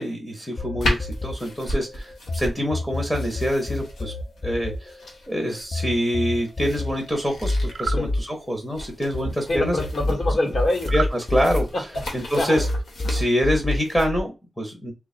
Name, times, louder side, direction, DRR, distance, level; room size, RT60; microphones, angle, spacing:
voice 1, 0.0-4.1 4.4-4.9 5.3-7.5 7.8-9.8 10.9-11.6 12.1-12.7 13.1-14.9, equal, 10° left, 1 dB, 0.8 m, -25 dB
sound 1, 0.6-2.4 2.7-9.3 9.6-12.3 12.6-14.2, left 2 dB, 25° left, 0.4 m, -28 dB
sound 2, 0.8-14.1, left 1 dB, 80° left, 1.4 m, -34 dB
sound 3, 7.6-8.0 10.8-11.2, right 5 dB, 55° right, 0.4 m, -30 dB
voice 2, 9.5-10.9 11.7-12.0 12.3-12.7, left 1 dB, 50° left, 2 dB, 1.3 m, -25 dB
3.2 x 2.4 x 4.1 m, 0.26 s
wide cardioid pair, 160°, 0 cm